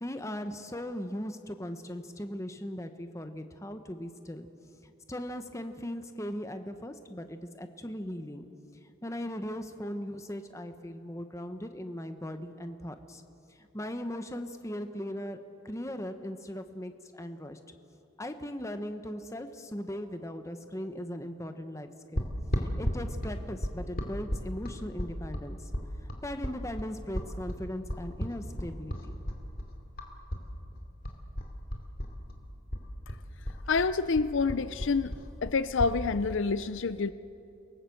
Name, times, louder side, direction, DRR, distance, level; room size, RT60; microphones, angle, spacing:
voice 1, 0.0-4.5 4.8-8.5 9.0-13.2 13.6-17.6 18.2-22.2 22.6-25.7 26.2-29.2, equal, 15° left, 8 dB, 1.0 m, -38 dB
sound 1, 22.2-30.5 30.7-32.4 32.7-36.0, equal, 45° left, 2.5 m, -34 dB
voice 2, 33.7-35.2 35.4-37.1, left 4 dB, 65° left, 14 dB, 0.5 m, -27 dB
28.5 x 18.5 x 7.8 m, 2.8 s
head